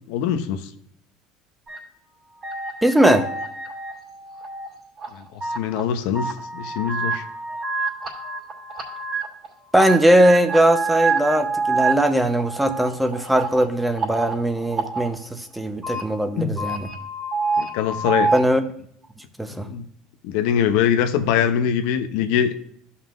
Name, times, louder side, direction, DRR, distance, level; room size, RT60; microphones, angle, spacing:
voice 1, 0.1-0.7 5.1-7.2 16.4-16.6 17.6-18.3 19.5-19.8 20.2-22.5, left 8 dB, 75° left, 9 dB, 0.8 m, -23 dB
sound 1, 1.7-1.8 2.4-4.7 5.0-5.8 6.1-9.5 9.7-15.1 15.6-16.0 16.4-18.4, right 4 dB, 35° right, 2.6 m, -27 dB
voice 2, 2.8-3.3 9.7-16.9 18.3-18.6 19.4-19.7, right 1 dB, 5° right, 8 dB, 0.9 m, -19 dB
13.0 x 5.6 x 2.5 m, 0.68 s
supercardioid pair, 110°, 0 cm